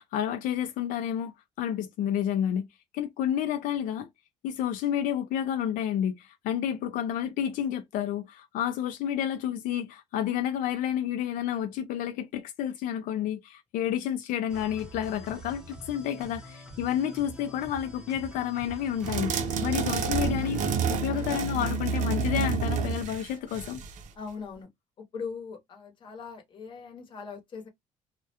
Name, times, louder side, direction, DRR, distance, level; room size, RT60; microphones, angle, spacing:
voice 1, 0.0-2.7 2.9-4.1 4.4-19.3 19.6-20.6 20.9-23.8, left 10 dB, 80° left, 0.4 m, -30 dB
sound 1, 14.5-20.7, right 1 dB, 5° right, 0.8 m, -45 dB
sound 2, 19.0-24.1, right 5 dB, 65° right, 0.5 m, -29 dB
voice 2, 24.2-24.7 25.0-27.7, left 5 dB, 35° left, 0.9 m, -40 dB
2.3 x 2.1 x 2.7 m
cardioid pair, 150°, 14 cm